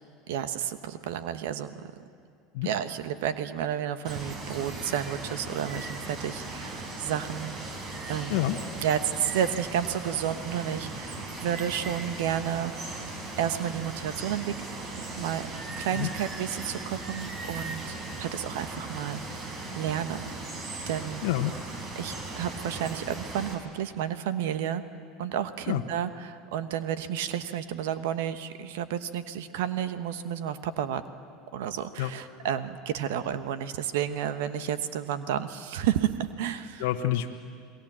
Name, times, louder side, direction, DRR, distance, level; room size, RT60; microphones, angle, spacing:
voice 1, 0.3-1.9 2.6-7.8 8.1-8.4 8.8-12.7 13.4-14.5 15.2-15.5 15.8-17.8 18.2-19.2 19.7-20.3 20.9-21.2 21.9-24.8 25.2-31.0 31.5-36.9, right 9 dB, 70° right, 12 dB, 1.1 m, -31 dB
Water, 4.0-23.5, right 2 dB, 50° right, 5.4 m, -38 dB
voice 2, 21.2-21.5 25.7-25.8 32.0-32.1 36.8-37.3, left 14 dB, 70° left, 3 dB, 1.1 m, -27 dB
29.0 x 21.0 x 7.6 m, 2.3 s
hypercardioid pair, 80°, 0 cm